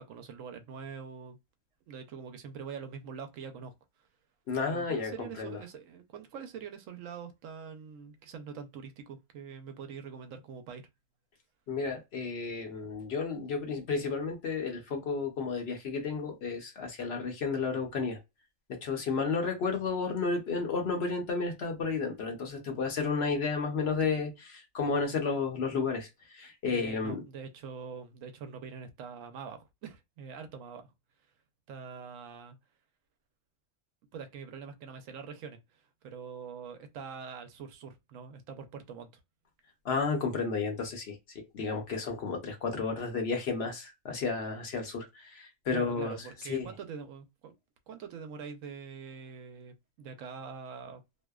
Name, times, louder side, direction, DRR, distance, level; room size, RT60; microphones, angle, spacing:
voice 1, 0.0-1.4 1.9-3.7 4.7-10.8 26.7-30.9 31.7-32.6 34.1-39.2 45.7-47.5 47.9-51.0, right 6 dB, 80° right, 1.0 m, -44 dB
voice 2, 4.5-5.6 11.7-18.2 18.7-27.2 39.8-46.2 46.4-46.7, left 4 dB, 60° left, 0.9 m, -32 dB
2.7 x 2.1 x 2.2 m
omnidirectional pair, 1.3 m